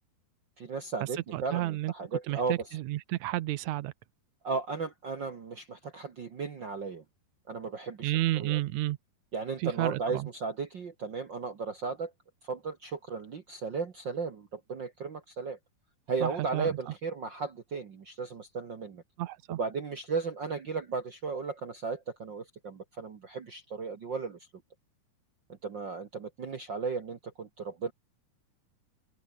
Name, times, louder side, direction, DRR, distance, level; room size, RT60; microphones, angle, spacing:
voice 1, 0.6-2.8 4.4-7.0 7.5-8.6 9.3-12.1 12.4-15.6 16.1-19.0 19.5-24.4 25.6-27.9, right 4 dB, 55° right, 1.3 m, -35 dB
voice 2, 1.3-1.9 2.3-3.9 8.0-9.0 9.6-10.3 16.2-16.7 19.2-19.6, right 16 dB, 90° right, 1.6 m, -31 dB
open air
omnidirectional pair, 4.4 m